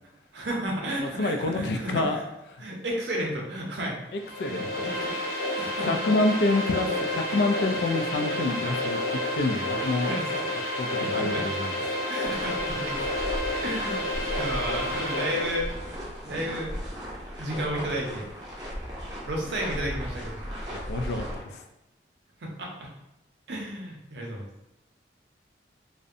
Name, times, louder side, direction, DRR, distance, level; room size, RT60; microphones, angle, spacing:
voice 1, 0.3-2.2 2.6-4.0 4.5-4.7 5.0-5.1 5.6-6.0 8.3-8.7 9.8-10.2 11.0-11.5 12.1-13.0 13.6-15.7 16.2-16.7 17.4-18.2 19.3-20.4 22.4-22.9 23.5-24.4, right 1 dB, 80° right, -2 dB, 0.6 m, -32 dB
voice 2, 1.0-2.2 4.4-4.7 5.9-9.0 9.3-10.1 10.8-11.8 20.7-21.6, left 2 dB, 70° left, 5 dB, 0.3 m, -27 dB
sound 1, 4.2-15.8, left 1 dB, 50° left, 0.9 m, -30 dB
sound 2, 12.2-21.4, equal, 25° right, 0.5 m, -37 dB
2.6 x 2.1 x 2.4 m, 0.94 s
head